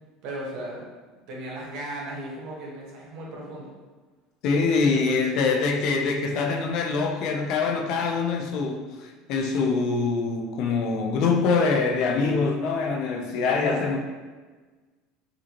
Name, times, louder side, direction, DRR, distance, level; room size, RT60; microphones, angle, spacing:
voice 1, 0.2-0.9 1.3-3.7 4.9-5.4 13.5-13.9, right 1 dB, 60° right, -3 dB, 1.3 m, -36 dB
voice 2, 4.4-14.0, left 4 dB, 60° left, 3 dB, 0.6 m, -24 dB
5.0 x 2.7 x 2.9 m, 1.3 s
supercardioid pair, 105°, 0 cm